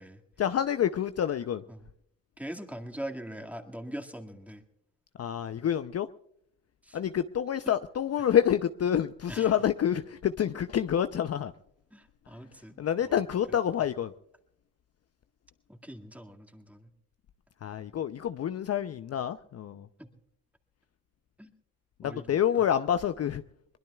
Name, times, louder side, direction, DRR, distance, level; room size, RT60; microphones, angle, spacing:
voice 1, 0.4-1.6 5.2-6.1 6.9-11.5 12.8-14.1 17.6-19.9 22.0-23.4, left 9 dB, 40° left, 10 dB, 0.6 m, -28 dB
voice 2, 2.4-4.6 6.8-7.0 7.6-7.7 9.3-9.5 11.9-12.8 15.7-16.9 20.0-20.1 21.4-21.5 22.0-22.4, right 1 dB, 5° right, 3 dB, 2.0 m, -42 dB
22.5 x 20.5 x 2.3 m, 0.70 s
supercardioid pair, 60°, 37 cm